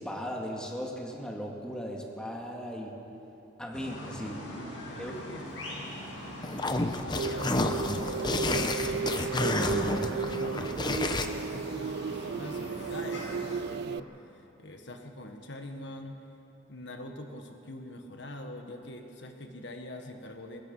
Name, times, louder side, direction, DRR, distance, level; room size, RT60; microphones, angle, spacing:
voice 1, 0.0-3.0 3.6-4.5 5.0-5.1 5.4-5.5, equal, 5° left, -1 dB, 2.3 m, -37 dB
sound 1, 3.7-13.6, equal, 85° left, 6.4 m, -42 dB
voice 2, 4.4-6.1 6.7-14.1 14.3-16.2 16.7-20.6, left 1 dB, 65° left, 4 dB, 1.6 m, -44 dB
sound 2, 6.4-11.3, left 2 dB, 25° left, 0.9 m, -30 dB
sound 3, 7.1-14.0, right 5 dB, 60° right, 0.3 m, -34 dB
23.0 x 20.5 x 5.6 m, 2.9 s
head